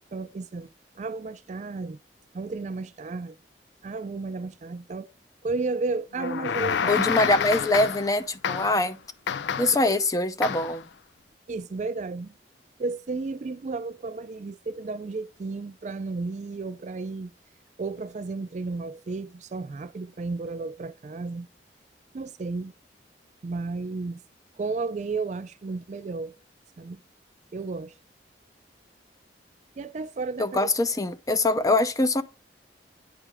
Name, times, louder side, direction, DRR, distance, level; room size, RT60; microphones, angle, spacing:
voice 1, 0.1-0.7 1.0-2.0 2.3-3.3 3.8-5.1 5.4-7.0 11.5-12.3 12.8-17.3 17.8-21.5 22.1-22.7 23.4-24.2 24.6-26.3 26.8-27.0 27.5-27.9 29.8-30.7, right 3 dB, 40° right, 0.4 m, -33 dB
sound 1, 6.2-8.1 8.4-8.9 9.3-9.9 10.4-10.8, left 7 dB, 80° left, 0.4 m, -28 dB
voice 2, 6.9-9.0 9.6-10.8 30.4-32.2, left 2 dB, 20° left, 0.5 m, -23 dB
9.9 x 3.4 x 4.8 m
head